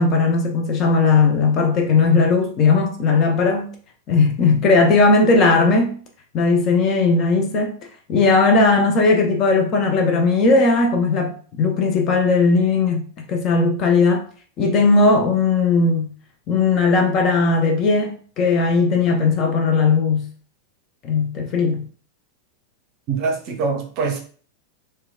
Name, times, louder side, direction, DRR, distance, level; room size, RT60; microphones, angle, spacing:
voice 1, 0.0-3.7 4.1-5.9 6.3-7.7 8.1-14.2 14.6-16.1 16.5-20.3 21.0-21.9, left 3 dB, 35° left, 0.5 m, -17 dB
voice 2, 23.1-24.2, right 4 dB, 40° right, 0.6 m, -24 dB
2.8 x 2.1 x 2.2 m
figure-of-eight pair, 90°, 0 cm